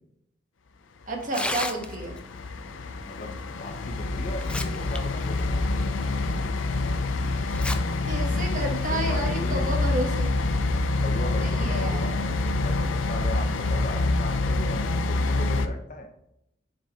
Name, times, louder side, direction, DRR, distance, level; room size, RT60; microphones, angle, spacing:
voice 1, 1.1-2.1 8.1-10.4 11.4-12.2, right 1 dB, 45° right, 2 dB, 1.3 m, -31 dB
Tearing, 1.2-2.2 3.7-3.8 4.2-5.0 5.3-5.5 6.1-6.2 7.5-7.8 8.2-8.3 9.1-9.4, left 2 dB, 5° left, 0.3 m, -32 dB
sound 1, 1.4-15.7, left 2 dB, 90° left, 0.5 m, -26 dB
voice 2, 3.1-6.1 8.9-9.7 11.0-16.1, left 1 dB, 40° left, 4 dB, 0.8 m, -38 dB
6.2 x 4.3 x 3.5 m, 0.80 s
head